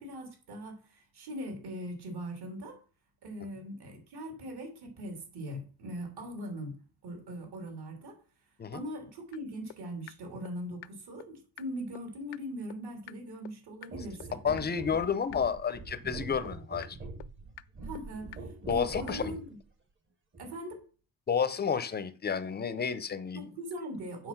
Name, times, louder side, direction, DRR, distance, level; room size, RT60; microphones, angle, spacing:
voice 1, 0.0-2.8 3.2-6.8 7.0-8.2 8.7-14.4 17.8-19.5 20.4-20.8 23.3-24.3, equal, 55° right, 3.1 m, -41 dB
sound 1, 9.3-9.4 9.7-9.8 10.1-10.2 10.4-10.5 10.8-10.9 11.2-11.3 11.6-11.7 11.9-12.0 12.3-12.4 12.7-12.8 13.1-13.2 13.4-13.5 13.8-13.9 14.2-14.3 14.6-14.7 14.9-15.0 15.3-15.4 15.7-15.8 16.1-16.2 16.4-16.5 16.8-16.9 17.2-17.3 17.6-17.7 17.9-18.0 18.3-18.4 18.7-18.8 19.1-19.2, left 18 dB, 70° left, 0.5 m, -45 dB
sound 2, 13.9-19.5 20.3-20.5, right 3 dB, 25° right, 1.2 m, -43 dB
voice 2, 14.4-17.0 18.7-19.4 21.3-23.5, left 6 dB, 20° left, 0.6 m, -31 dB
7.7 x 6.1 x 5.9 m
cardioid pair, 160°, 45 cm